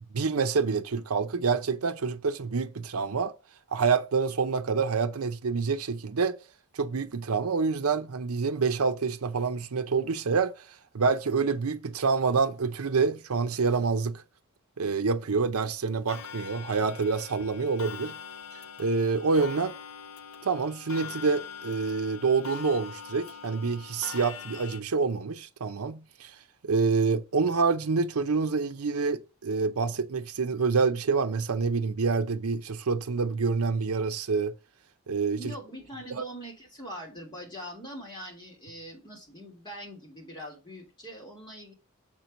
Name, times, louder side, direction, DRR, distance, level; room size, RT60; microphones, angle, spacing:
voice 1, 0.1-3.3 3.7-6.4 6.7-10.7 10.9-14.2 14.8-18.2 18.5-19.7 20.4-26.3 26.6-34.5 35.1-35.5, right 4 dB, 85° right, 0.7 m, -27 dB
Clock, 16.1-24.8, left 7 dB, 70° left, 0.6 m, -43 dB
voice 2, 35.4-41.7, equal, 20° left, 3.2 m, -42 dB
7.5 x 4.5 x 5.2 m
head